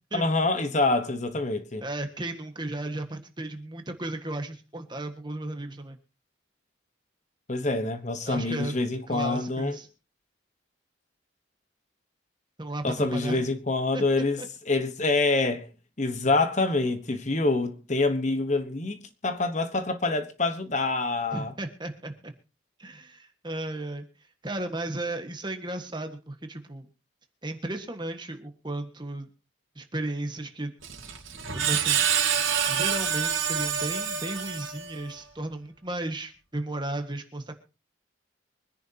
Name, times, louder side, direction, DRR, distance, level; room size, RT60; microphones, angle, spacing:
voice 1, 0.1-1.8 7.5-9.8 12.8-15.7 16.0-21.5, left 2 dB, 35° left, 1.1 m, -26 dB
voice 2, 1.8-6.0 8.3-8.7 9.1-9.9 12.6-13.5 13.9-14.0 14.4-14.5 21.3-22.3 22.8-24.1 24.4-26.9 27.4-29.3 29.7-30.7 31.5-32.0 32.7-37.5, right 2 dB, 20° right, 1.6 m, -34 dB
Screech, 30.8-35.1, right 8 dB, 80° right, 2.6 m, -27 dB
24.0 x 10.5 x 2.9 m
head